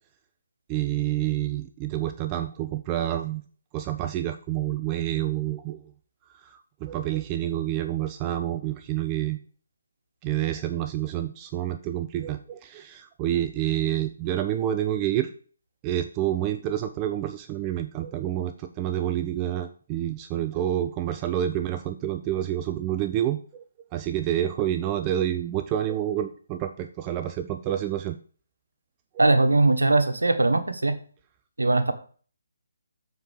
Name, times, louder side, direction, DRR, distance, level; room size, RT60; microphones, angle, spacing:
voice 1, 0.7-3.4 3.7-5.9 6.4-9.4 10.2-15.3 15.8-23.6 23.9-28.2 29.1-29.2, right 12 dB, 25° right, 8 dB, 0.5 m, -28 dB
voice 2, 29.2-30.9 31.6-31.9, right 2 dB, 90° right, 7 dB, 1.3 m, -20 dB
7.7 x 4.6 x 6.5 m, 0.42 s
figure-of-eight pair, 150°, 0 cm